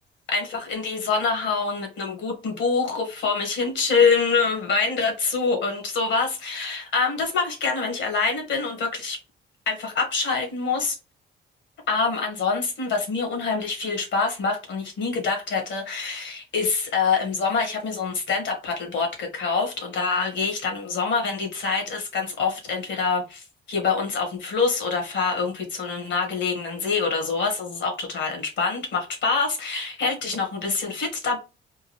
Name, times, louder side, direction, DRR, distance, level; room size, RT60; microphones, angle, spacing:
voice 1, 0.3-9.2 9.7-10.9 11.9-31.4, left 4 dB, 65° left, 1.5 m, -25 dB
3.7 x 2.3 x 3.1 m
cardioid pair, 90°, 20 cm